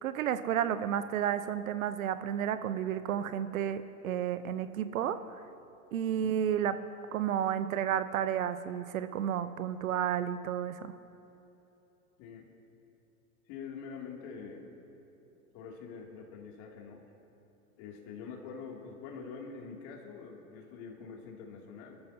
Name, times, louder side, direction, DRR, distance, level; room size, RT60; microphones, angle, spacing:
voice 1, 0.0-5.2 5.9-6.8 7.1-10.9, right 9 dB, 65° right, 12 dB, 0.8 m, -31 dB
voice 2, 12.2-12.5 13.5-14.8 15.5-17.0 17.8-22.0, left 5 dB, 45° left, 0 dB, 2.7 m, -45 dB
25.5 x 13.5 x 2.8 m, 3.0 s
hypercardioid pair, 100°, 44 cm